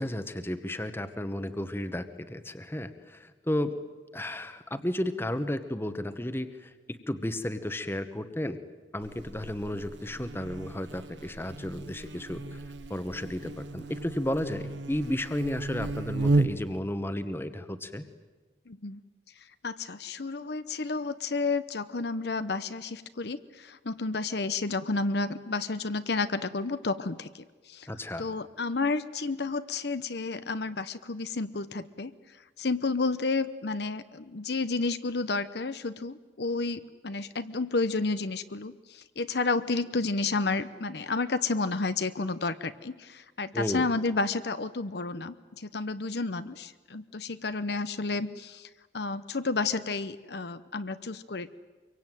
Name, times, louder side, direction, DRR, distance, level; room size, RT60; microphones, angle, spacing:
voice 1, 0.0-3.8 4.1-6.7 7.1-8.6 8.9-12.6 12.9-18.0 27.9-28.3 43.5-43.9, left 1 dB, 10° left, 10 dB, 1.2 m, -33 dB
Buzz, 9.0-16.8, right 2 dB, 70° right, 1.0 m, -33 dB
voice 2, 18.7-19.0 19.6-27.9 28.2-32.1 32.6-51.5, left 3 dB, 60° left, 12 dB, 0.8 m, -31 dB
25.0 x 23.5 x 9.1 m, 1.3 s
head